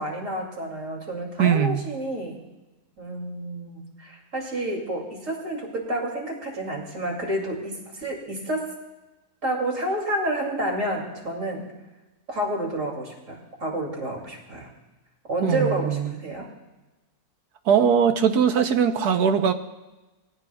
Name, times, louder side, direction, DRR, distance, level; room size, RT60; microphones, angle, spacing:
voice 1, 0.0-2.4 3.0-8.7 9.4-11.6 12.3-14.7 15.3-16.5, right 1 dB, 55° right, -1 dB, 3.0 m, -29 dB
voice 2, 1.4-1.9 15.4-16.1 17.7-19.5, right 7 dB, 85° right, 7 dB, 1.4 m, -21 dB
20.0 x 15.0 x 2.3 m, 1.1 s
omnidirectional pair, 1.6 m